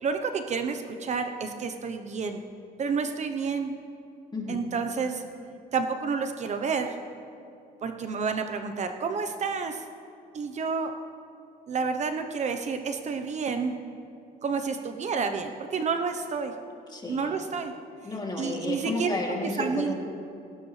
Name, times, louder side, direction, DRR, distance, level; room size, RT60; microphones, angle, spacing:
voice 1, 0.0-2.4 2.8-3.7 4.5-5.2 5.7-7.0 7.8-9.8 10.3-10.9 11.7-13.8 14.4-16.5 17.1-17.7 18.4-19.1 19.6-19.9, right 5 dB, 45° right, 7 dB, 0.9 m, -29 dB
voice 2, 4.3-4.7 16.9-17.4 18.0-20.0, left 2 dB, 25° left, -1 dB, 2.9 m, -32 dB
18.0 x 17.0 x 3.3 m, 2.6 s
cardioid pair, 110°, 17 cm